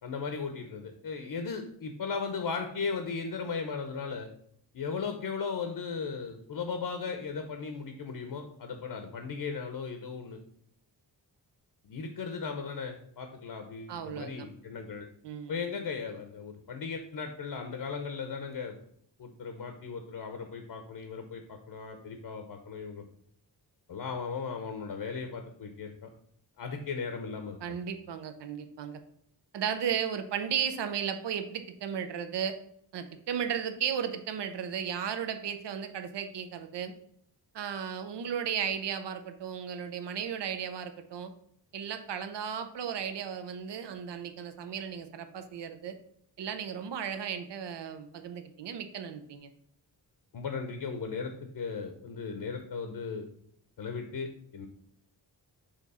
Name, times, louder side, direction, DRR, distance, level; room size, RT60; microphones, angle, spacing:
voice 1, 0.0-4.3 4.7-10.4 11.8-15.1 15.5-18.7 19.2-23.0 23.9-26.1 26.6-27.8 50.3-53.3 53.8-54.7, left 5 dB, 60° left, 6 dB, 0.8 m, -37 dB
voice 2, 13.9-14.5 15.2-15.6 27.6-29.0 29.5-32.6 32.9-36.9 37.5-41.3 41.7-46.0 46.4-49.5, right 8 dB, 75° right, 9 dB, 0.7 m, -35 dB
6.8 x 3.0 x 5.5 m, 0.67 s
wide cardioid pair, 140°, 42 cm